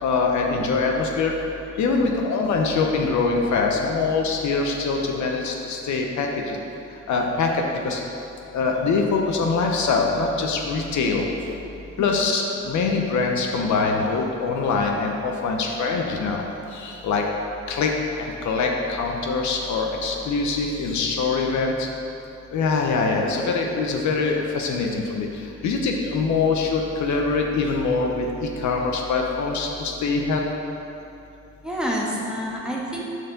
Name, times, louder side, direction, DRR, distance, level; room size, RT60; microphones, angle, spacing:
voice 1, 0.0-1.3 1.8-6.6 7.1-8.0 8.5-11.3 12.0-16.4 16.7-17.2 17.7-17.9 18.4-21.9 22.5-25.3 25.6-30.4, left 4 dB, 70° left, 1 dB, 0.9 m, -23 dB
voice 2, 31.6-33.0, equal, 5° right, -4 dB, 1.4 m, -28 dB
6.4 x 4.6 x 6.6 m, 2.8 s
cardioid pair, 90°, 30 cm